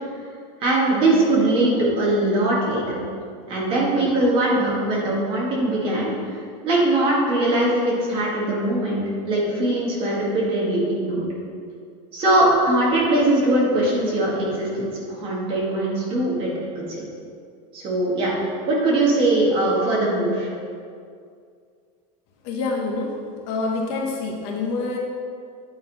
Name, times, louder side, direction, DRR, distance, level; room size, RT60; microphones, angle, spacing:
voice 1, 0.6-2.9 3.5-11.2 12.1-16.5 16.9-17.0 17.7-18.3 18.7-20.5, right 1 dB, 30° right, -5 dB, 1.6 m, -21 dB
voice 2, 22.4-23.2 23.5-25.0, left 3 dB, 50° left, 0 dB, 0.9 m, -26 dB
8.9 x 3.6 x 4.6 m, 2.2 s
supercardioid pair, 175°, 19 cm